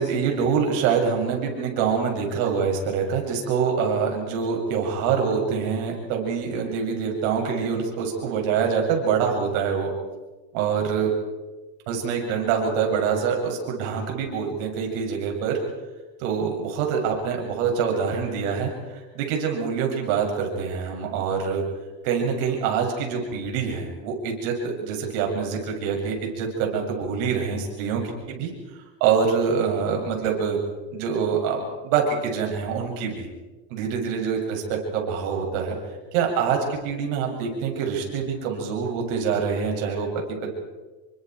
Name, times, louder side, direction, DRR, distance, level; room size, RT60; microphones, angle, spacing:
voice 1, 0.0-9.9 10.5-11.1 11.9-15.6 16.2-21.6 22.0-28.0 28.3-28.5 29.0-30.6 30.9-33.3 33.7-35.8 36.1-40.6, right 6 dB, 70° right, 1 dB, 7.8 m, -25 dB
29.0 x 24.5 x 4.8 m, 1.2 s
supercardioid pair, 115°, 41 cm